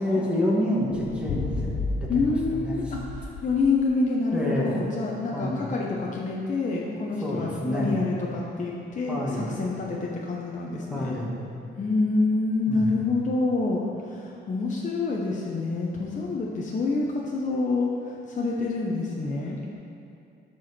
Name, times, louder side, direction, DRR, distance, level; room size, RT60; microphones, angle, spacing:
voice 1, 0.0-2.9 4.3-4.7 5.3-5.7 7.2-8.0 9.1-9.6 10.9-11.4 12.7-13.0, left 1 dB, 5° right, -5 dB, 2.2 m, -28 dB
sound 1, 0.9-3.7, left 3 dB, 65° left, 0.9 m, -33 dB
voice 2, 2.1-11.2 11.8-17.9 18.3-19.6, left 3 dB, 40° left, -3 dB, 1.0 m, -27 dB
12.5 x 4.8 x 4.4 m, 2.6 s
cardioid pair, 90°, 20 cm